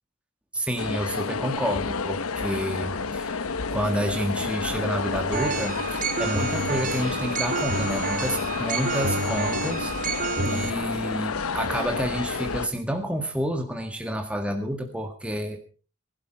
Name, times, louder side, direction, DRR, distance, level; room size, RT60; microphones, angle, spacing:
voice 1, 0.5-15.7, equal, 5° right, 4 dB, 1.8 m, -29 dB
sound 1, 0.8-12.7, left 4 dB, 90° left, 1.0 m, -30 dB
sound 2, 5.3-10.7, right 4 dB, 40° right, 0.9 m, -29 dB
20.0 x 12.5 x 4.6 m, 0.37 s
head